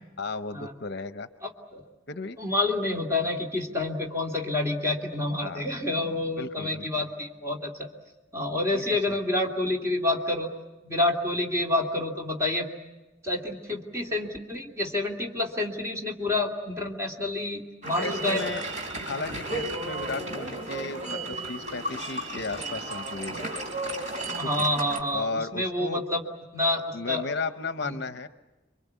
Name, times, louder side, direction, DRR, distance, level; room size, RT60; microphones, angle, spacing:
voice 1, 0.2-1.3 2.1-2.4 5.4-5.7 6.4-6.9 8.7-9.2 18.0-18.6 19.0-23.5 24.6-24.7 25.1-26.0 26.9-28.3, left 3 dB, 55° left, 10 dB, 0.8 m, -35 dB
voice 2, 1.4-1.9 2.4-7.9 8.3-10.5 10.8-12.7 13.2-18.4 24.3-26.2 26.5-27.2 27.8-28.0, left 2 dB, 15° right, 0 dB, 2.8 m, -28 dB
sound 1, 17.8-25.0, right 2 dB, 40° right, 3.8 m, -34 dB
27.0 x 24.0 x 8.3 m, 1.1 s
head